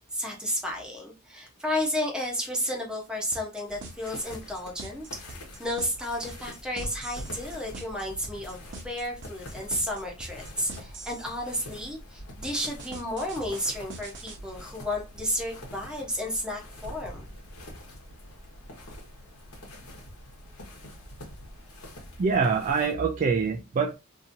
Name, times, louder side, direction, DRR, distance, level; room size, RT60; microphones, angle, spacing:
voice 1, 0.1-5.0 5.6-17.2, left 1 dB, 5° right, 0.8 m, -32 dB
sound 1, 3.3-11.3 12.4-14.4, right 2 dB, 55° right, 0.8 m, -43 dB
sound 2, 3.7-22.9, left 1 dB, 85° left, 1.2 m, -45 dB
voice 2, 22.2-23.9, right 5 dB, 35° right, 0.3 m, -25 dB
2.8 x 2.7 x 2.5 m
head